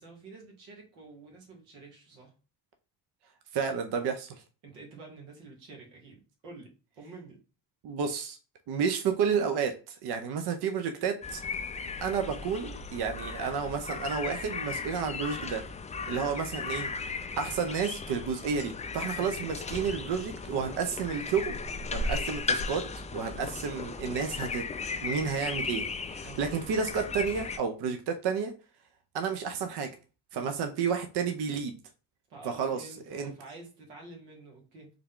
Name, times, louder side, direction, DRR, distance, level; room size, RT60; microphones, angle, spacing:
voice 1, 0.0-2.3 4.6-6.7 6.9-7.4 19.1-19.3 26.2-26.7 30.3-30.6 32.3-34.9, right 3 dB, 85° right, 0 dB, 1.3 m, -49 dB
voice 2, 3.5-4.4 7.8-8.4 8.7-11.4 12.0-15.6 16.1-16.9 17.4-21.6 21.9-22.8 23.1-24.6 25.0-25.9 26.1-28.5 29.1-29.9 30.3-31.8 32.4-33.3, right 6 dB, 55° right, 6 dB, 0.6 m, -31 dB
sound 1, 11.2-27.6, left 4 dB, 15° left, 0.3 m, -36 dB
3.5 x 2.3 x 3.6 m, 0.34 s
supercardioid pair, 60°, 47 cm